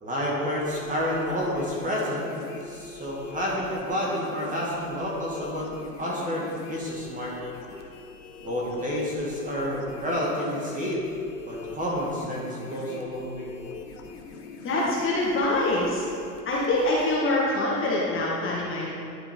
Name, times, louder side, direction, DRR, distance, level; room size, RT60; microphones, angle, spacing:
voice 1, 0.0-2.3 2.6-5.7 6.0-7.3 8.4-11.0 11.5-13.5, equal, 15° right, -4 dB, 1.8 m, -29 dB
sound 1, 0.5-17.2, left 4 dB, 50° left, 1.2 m, -43 dB
voice 2, 14.6-16.0 16.4-18.9, left 2 dB, 25° left, -5 dB, 1.4 m, -25 dB
11.0 x 4.8 x 3.6 m, 2.6 s
hypercardioid pair, 110°, 47 cm